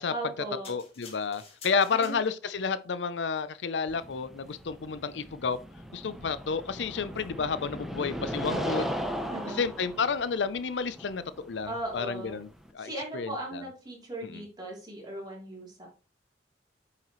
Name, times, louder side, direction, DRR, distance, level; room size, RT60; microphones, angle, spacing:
voice 1, 0.1-0.7 1.9-2.2 8.5-8.9 9.2-9.6 11.7-12.4 12.8-15.9, right 2 dB, 25° right, 3.1 m, -38 dB
sound 1, 0.6-2.6 3.3-3.4, left 5 dB, 35° left, 2.3 m, -50 dB
voice 2, 0.7-5.6 5.9-8.9 9.6-12.5 12.7-12.9 13.1-13.6 14.2-14.4, left 5 dB, 75° left, 0.5 m, -31 dB
sound 2, 3.9-12.7, equal, ahead, 0.9 m, -37 dB
8.9 x 5.8 x 3.0 m
head